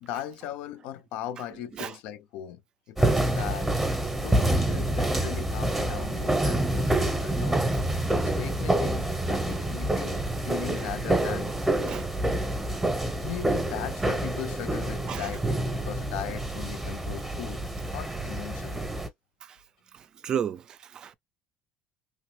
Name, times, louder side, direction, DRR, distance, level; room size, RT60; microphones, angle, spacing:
voice 1, 0.0-2.6 2.9-3.7 4.2-7.6 8.2-11.9 13.2-17.6 17.9-18.8, left 11 dB, 80° left, 0.5 m, -38 dB
sound 1, 3.0-19.1, right 1 dB, 10° right, 0.7 m, -27 dB
voice 2, 19.9-21.1, right 9 dB, 40° right, 0.3 m, -33 dB
3.0 x 2.0 x 3.1 m
cardioid pair, 130°, 2 cm